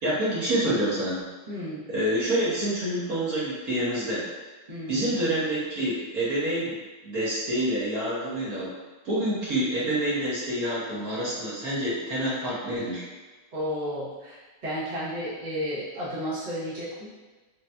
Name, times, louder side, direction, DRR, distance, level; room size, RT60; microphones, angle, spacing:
voice 1, 0.0-1.2 1.9-4.3 4.9-6.8 7.0-8.7 9.0-13.1, right 1 dB, 55° right, -8 dB, 1.2 m, -27 dB
voice 2, 1.5-1.8 4.7-5.1 13.5-17.1, equal, 80° right, -9 dB, 0.4 m, -33 dB
4.1 x 2.5 x 2.2 m, 1.3 s
omnidirectional pair, 2.3 m